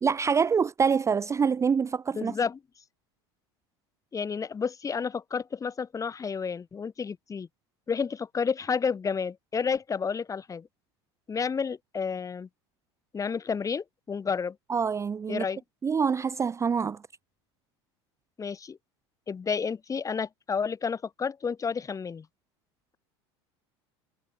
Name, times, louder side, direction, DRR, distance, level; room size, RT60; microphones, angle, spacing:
voice 1, 0.0-2.4 14.7-15.4 15.8-17.0, right 6 dB, 20° right, 0.5 m, -25 dB
voice 2, 2.1-2.6 4.1-7.5 7.9-10.7 11.3-12.5 13.1-14.5 15.3-15.6 18.4-18.8 19.3-22.2, left 6 dB, 25° left, 1.5 m, -31 dB
hypercardioid pair, 95°, 14 cm